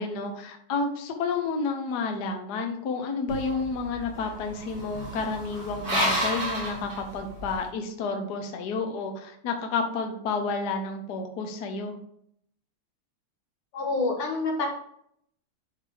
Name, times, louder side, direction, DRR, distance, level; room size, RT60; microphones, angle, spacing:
voice 1, 0.0-12.0, left 4 dB, 60° left, 4 dB, 1.3 m, -30 dB
sound 1, 3.3-7.6, equal, 40° right, 3.2 m, -31 dB
voice 2, 13.7-14.7, left 3 dB, 85° left, 0 dB, 2.5 m, -27 dB
11.0 x 3.9 x 3.4 m, 0.69 s
omnidirectional pair, 2.4 m